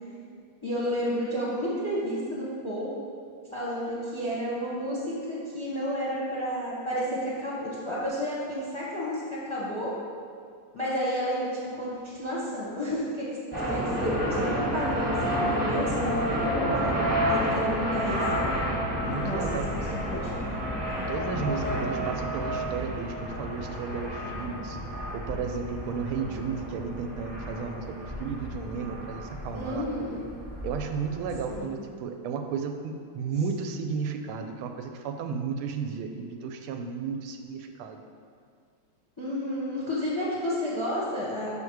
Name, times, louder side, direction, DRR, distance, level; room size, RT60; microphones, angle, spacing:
voice 1, 0.6-2.9 3.5-9.9 10.7-13.4 13.7-18.2 19.0-19.4 19.7-20.6 29.5-30.2 31.5-31.8 39.2-41.5, equal, 20° left, -6 dB, 0.9 m, -31 dB
sound 1, 13.5-31.6, equal, 15° right, 0.9 m, -30 dB
voice 2, 19.0-19.8 21.1-24.8 25.1-29.9 30.6-38.0, right 5 dB, 85° right, 6 dB, 1.5 m, -33 dB
5.8 x 5.7 x 4.6 m, 2.2 s
omnidirectional pair, 2.4 m